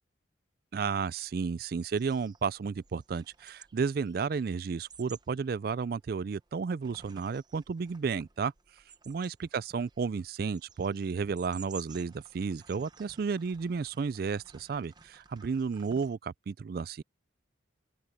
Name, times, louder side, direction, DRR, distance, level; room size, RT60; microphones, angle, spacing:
voice 1, 0.7-8.5 9.1-17.0, right 5 dB, 50° right, 0.3 m, -32 dB
sound 1, 1.3-16.2, right 5 dB, 20° right, 0.7 m, -56 dB
open air
head